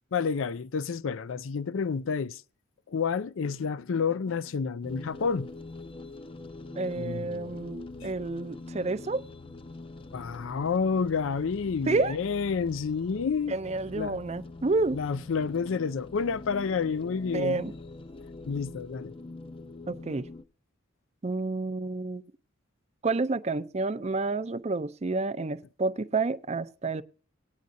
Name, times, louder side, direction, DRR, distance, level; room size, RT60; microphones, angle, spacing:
voice 1, 0.1-2.4 2.9-5.5 7.0-7.6 8.0-8.1 10.1-13.6 14.0-14.2 14.9-17.6 18.5-19.1, left 5 dB, 70° left, 0.4 m, -29 dB
sound 1, 4.8-20.4, left 2 dB, 25° left, 0.5 m, -44 dB
voice 2, 6.7-9.2 11.9-12.2 13.5-15.0 17.3-17.7 19.9-20.3 21.2-22.2 23.0-27.0, right 3 dB, 30° right, 0.5 m, -29 dB
18.0 x 9.4 x 2.6 m
head